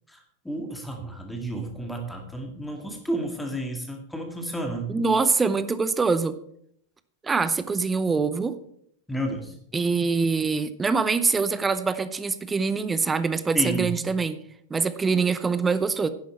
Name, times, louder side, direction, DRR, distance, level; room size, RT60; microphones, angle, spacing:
voice 1, 0.1-4.9 9.1-9.5 13.5-13.9, right 1 dB, 5° left, 3 dB, 2.0 m, -31 dB
voice 2, 4.9-6.4 7.2-8.5 9.7-14.4 14.7-16.1, right 4 dB, 15° right, 13 dB, 0.7 m, -24 dB
10.5 x 10.0 x 4.4 m, 0.69 s
figure-of-eight pair, 90°, 0 cm